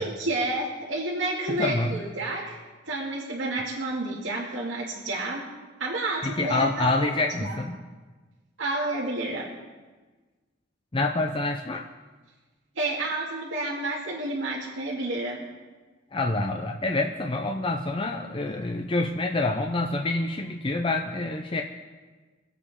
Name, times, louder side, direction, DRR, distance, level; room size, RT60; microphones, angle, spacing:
voice 1, 0.0-2.6 2.9-5.4 5.8-6.9 7.4-7.5 8.6-9.5 12.8-15.5, right 2 dB, 80° right, -5 dB, 2.2 m, -30 dB
voice 2, 1.5-2.1 6.2-7.8 10.9-11.8 16.1-21.6, left 2 dB, 25° left, 3 dB, 0.6 m, -27 dB
24.5 x 8.3 x 3.6 m, 1.3 s
head